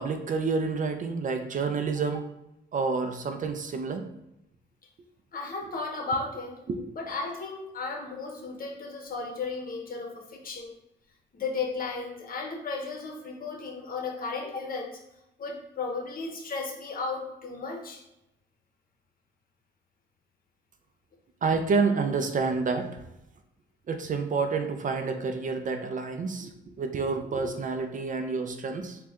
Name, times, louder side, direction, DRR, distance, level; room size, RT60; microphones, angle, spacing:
voice 1, 0.0-2.2 2.7-4.0 6.7-6.8 21.4-23.0 23.9-26.5 26.8-29.0, right 4 dB, 40° right, 6 dB, 0.4 m, -28 dB
voice 2, 5.3-6.6 6.9-10.7 11.3-15.0 15.4-18.0, left 4 dB, 45° left, 2 dB, 0.9 m, -34 dB
3.8 x 2.3 x 3.6 m, 0.88 s
cardioid pair, 90°, 20 cm